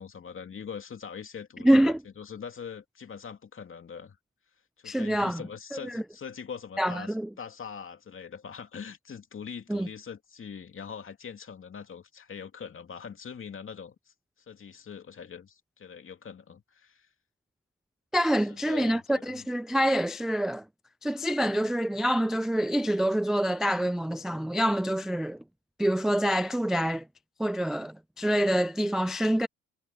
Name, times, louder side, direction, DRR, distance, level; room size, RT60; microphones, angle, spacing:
voice 1, 0.0-4.2 4.8-14.1 14.5-17.1 18.5-19.4, left 6 dB, 45° left, 2.6 m, -42 dB
voice 2, 1.6-2.0 4.8-5.4 5.7-6.0 6.8-7.3 9.7-9.9 18.1-20.6 21.0-25.4 25.8-27.0 27.4-29.5, equal, ahead, 0.3 m, -26 dB
cardioid pair, 90°, 30 cm